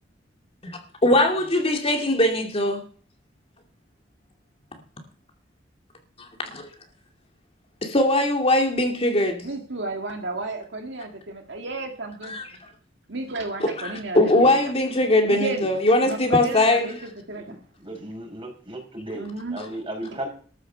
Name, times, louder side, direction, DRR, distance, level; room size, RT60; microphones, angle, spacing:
voice 1, 1.0-2.8 6.4-6.7 7.8-9.5 12.2-12.5 13.6-16.9 19.6-19.7, left 1 dB, 35° left, 2.4 m, -21 dB
voice 2, 9.4-12.3 13.1-14.6 15.2-15.8 16.0-17.0 17.3-17.4 19.1-19.6, right 2 dB, 70° right, 2.1 m, -32 dB
voice 3, 17.8-20.3, right 1 dB, 30° right, 5.4 m, -35 dB
13.5 x 8.2 x 6.8 m
head